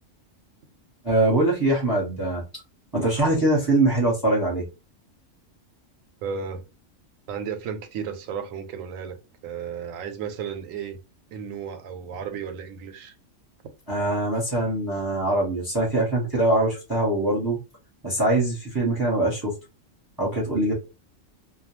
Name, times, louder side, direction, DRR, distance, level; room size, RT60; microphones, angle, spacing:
voice 1, 1.0-2.4 2.9-4.7 13.9-17.6 18.0-19.5 20.2-20.7, right 2 dB, 20° right, 0.9 m, -23 dB
voice 2, 6.2-6.6 7.3-9.2 9.4-11.0 11.3-13.1, right 7 dB, 85° right, 1.0 m, -33 dB
2.3 x 2.2 x 3.0 m
omnidirectional pair, 1.3 m